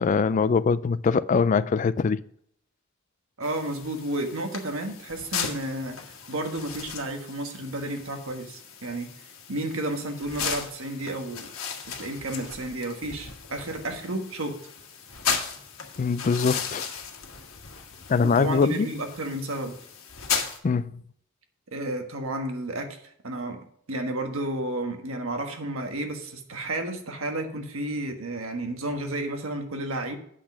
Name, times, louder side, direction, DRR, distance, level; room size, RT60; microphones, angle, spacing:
voice 1, 0.0-2.2 16.0-16.9 18.1-18.9 20.6-21.0, left 5 dB, 35° left, 0.3 m, -23 dB
sound 1, 3.4-20.6, left 6 dB, 75° left, 1.5 m, -36 dB
voice 2, 3.4-6.0 6.3-9.1 9.5-11.5 11.9-14.6 18.2-19.7 21.7-23.0 23.2-23.6 23.9-30.2, right 1 dB, 75° right, 1.4 m, -32 dB
8.3 x 6.1 x 6.0 m
head